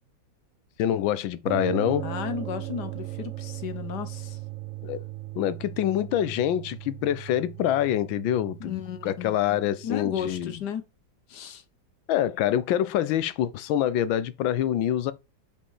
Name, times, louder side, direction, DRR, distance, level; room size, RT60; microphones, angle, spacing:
voice 1, 0.8-2.0 4.8-5.0 5.3-10.5 12.1-15.1, left 11 dB, 90° left, 1.5 m, -26 dB
sound 1, 1.5-10.6, right 16 dB, 60° right, 0.9 m, -38 dB
voice 2, 2.0-4.4 8.6-9.4 9.8-10.8 11.3-11.6, left 9 dB, 65° left, 1.3 m, -34 dB
5.5 x 5.1 x 4.8 m
omnidirectional pair, 2.1 m